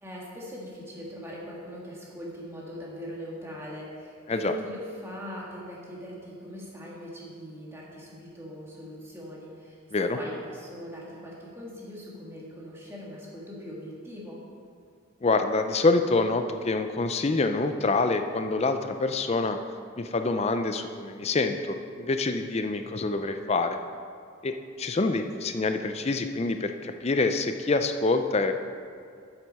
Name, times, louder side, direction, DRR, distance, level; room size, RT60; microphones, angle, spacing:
voice 1, 0.0-14.4, equal, 10° right, -5 dB, 1.7 m, -40 dB
voice 2, 15.2-19.6 20.0-23.8 24.4-28.5, left 3 dB, 30° left, 7 dB, 0.4 m, -26 dB
8.2 x 7.5 x 5.4 m, 2.3 s
head